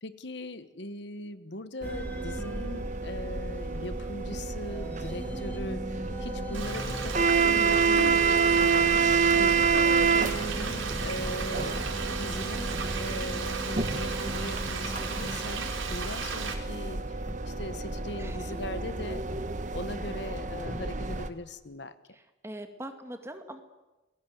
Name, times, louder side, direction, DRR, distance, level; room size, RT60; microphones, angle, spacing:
voice 1, 0.0-17.2 17.5-19.2 19.7-21.9, left 1 dB, 60° left, 12 dB, 1.2 m, -40 dB
sound 1, 1.8-15.4 15.9-16.0 16.6-16.7 17.3-17.4 18.0-18.1 19.3-19.4 20.0-20.1 20.7-20.8, equal, 10° left, 1.7 m, -41 dB
sound 2, 1.8-21.3, right 5 dB, 40° right, 1.4 m, -28 dB
Frying (food), 6.5-16.5, right 5 dB, 75° right, 4.5 m, -36 dB
voice 2, 18.2-18.5 22.1-23.6, right 1 dB, 15° right, 6 dB, 2.2 m, -42 dB
28.0 x 21.5 x 8.0 m, 1.1 s
head